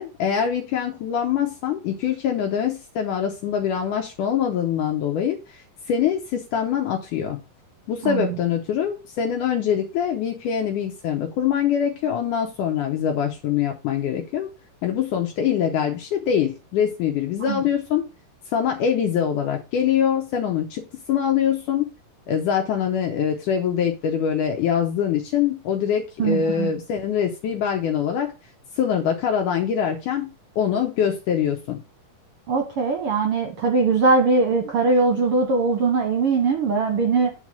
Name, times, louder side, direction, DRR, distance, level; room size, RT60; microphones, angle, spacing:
voice 1, 0.0-7.4 7.9-14.5 14.8-18.1 18.5-21.9 22.3-28.3 28.8-30.3 30.6-31.8, left 8 dB, 75° left, 2.4 m, -24 dB
voice 2, 8.0-8.4 17.5-17.6 26.2-26.7 32.5-37.3, right 4 dB, 60° right, 1.6 m, -21 dB
9.0 x 4.1 x 6.2 m
omnidirectional pair, 3.9 m